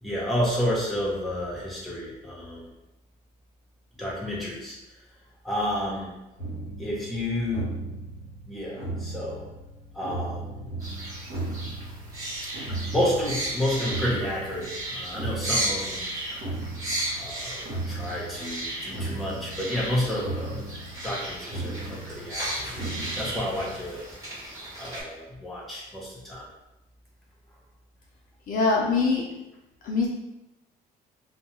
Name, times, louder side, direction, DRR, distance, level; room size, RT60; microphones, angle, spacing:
voice 1, 0.0-2.7 4.0-4.8 5.4-6.1 6.8-7.7 8.5-9.4 9.9-10.6 12.9-16.0 17.2-20.7 21.0-22.7 23.2-24.0 24.8-26.5, left 1 dB, ahead, -5 dB, 0.8 m, -30 dB
sound 1, 6.4-23.9, right 2 dB, 75° right, 1.0 m, -37 dB
sound 2, 10.8-25.0, right 1 dB, 20° right, 1.1 m, -35 dB
voice 2, 28.5-29.3 29.8-30.1, left 3 dB, 55° left, -2 dB, 0.5 m, -23 dB
2.2 x 2.2 x 2.9 m, 0.96 s
cardioid pair, 110°, 17 cm